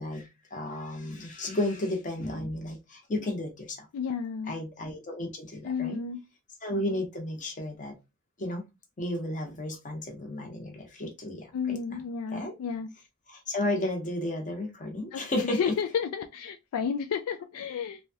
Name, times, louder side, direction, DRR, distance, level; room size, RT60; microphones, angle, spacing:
voice 1, 0.0-3.9 4.5-6.0 6.6-7.9 8.4-8.6 9.0-12.0 12.3-12.5 13.3-15.7, left 1 dB, 35° left, 0.9 m, -33 dB
voice 2, 3.9-4.6 5.6-6.2 11.5-12.9 15.1-18.0, left 6 dB, 70° left, 0.3 m, -32 dB
3.2 x 2.2 x 2.7 m
head